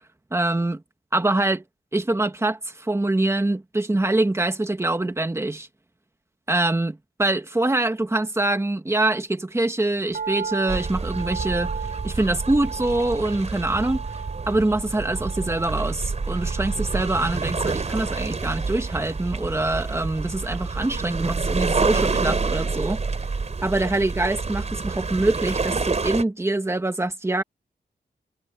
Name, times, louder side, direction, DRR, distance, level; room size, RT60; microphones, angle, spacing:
voice 1, 0.3-0.8 1.1-1.6 1.9-5.7 6.5-11.7 12.0-14.0 14.5-23.0 23.6-27.4, right 2 dB, 15° right, 2.1 m, -24 dB
sound 1, 10.1-22.4 22.7-22.8, right 6 dB, 60° right, 6.8 m, -38 dB
sound 2, 10.7-26.2, right 4 dB, 40° right, 3.6 m, -28 dB
wide cardioid pair, 115°, 17 cm